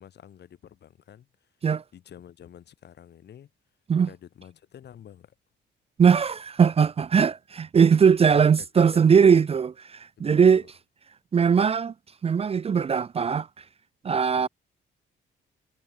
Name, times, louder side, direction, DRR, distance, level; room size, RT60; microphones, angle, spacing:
voice 1, 0.0-1.5 1.9-3.5 4.0-5.3 8.0-9.0 10.2-10.7 14.3-14.5, left 9 dB, 60° left, 4.3 m, -48 dB
voice 2, 6.0-10.6 11.3-11.9 12.2-13.5 14.0-14.5, right 6 dB, 30° right, 0.6 m, -20 dB
cardioid pair, 130°, 20 cm